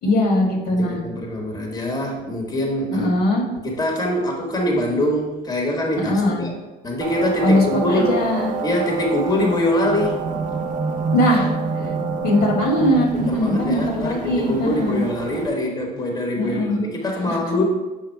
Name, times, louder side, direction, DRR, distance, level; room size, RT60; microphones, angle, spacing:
voice 1, 0.0-1.0 2.9-3.4 6.0-6.4 7.4-8.5 11.1-11.5 12.2-15.0 16.3-16.8 17.3-17.4, left 1 dB, 75° left, 0 dB, 1.5 m, -20 dB
voice 2, 0.9-3.1 3.6-8.2 8.6-10.2 11.8-11.9 13.1-17.6, left 1 dB, 20° left, 0 dB, 1.1 m, -24 dB
sound 1, 7.0-15.5, right 4 dB, 50° right, 0.6 m, -27 dB
6.4 x 3.6 x 4.4 m, 1.2 s
cardioid pair, 110°, 17 cm